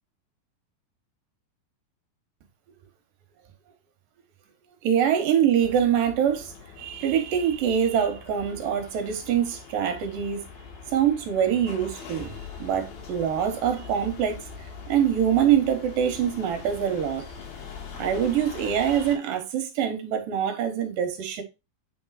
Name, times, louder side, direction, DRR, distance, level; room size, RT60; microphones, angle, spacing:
voice 1, 4.8-10.4 10.9-12.3 12.6-14.4 14.9-17.3 18.0-21.4, right 9 dB, 75° right, 2.8 m, -24 dB
sound 1, 5.6-19.2, left 5 dB, 90° left, 3.7 m, -42 dB
8.1 x 5.3 x 2.4 m
omnidirectional pair, 4.1 m